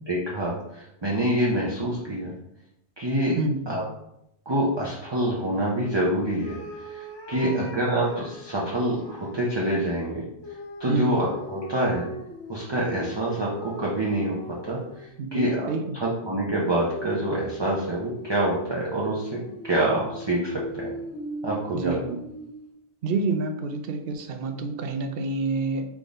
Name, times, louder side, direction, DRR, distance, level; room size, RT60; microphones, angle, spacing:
voice 1, 0.0-2.3 3.0-3.4 3.7-3.8 4.5-6.6 6.9-10.2 10.8-12.1 12.5-19.4 19.6-20.9 21.4-22.0, right 1 dB, 25° right, -4 dB, 0.7 m, -26 dB
sound 1, 6.4-9.4 10.4-15.2 16.6-22.7, equal, 90° left, 1.4 m, -39 dB
voice 2, 7.3-7.6 10.9-11.2 15.2-16.1 19.5-19.6 21.7-22.2 23.0-25.9, right 3 dB, 60° right, 6 dB, 0.7 m, -28 dB
3.7 x 3.6 x 4.0 m, 0.79 s
omnidirectional pair, 1.2 m